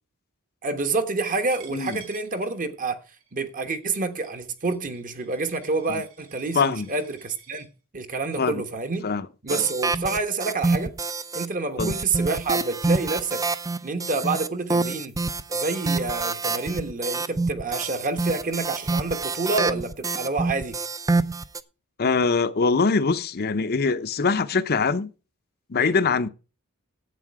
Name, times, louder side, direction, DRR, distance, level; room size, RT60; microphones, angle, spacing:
voice 1, 0.6-3.0 3.3-7.7 7.9-9.1 9.4-10.9 11.3-13.5 13.8-15.2 15.5-20.8 25.8-25.9, right 3 dB, 40° right, 1.2 m, -28 dB
Coin (dropping), 1.5-7.7, right 8 dB, 70° right, 4.9 m, -51 dB
voice 2, 6.5-6.9 8.4-8.6 9.0-9.6 11.8-11.9 22.0-25.1 25.7-26.3, left 4 dB, 45° left, 0.6 m, -23 dB
sound 1, 9.5-11.5 11.8-21.6, right 3 dB, 15° right, 0.5 m, -27 dB
11.0 x 8.4 x 4.7 m
head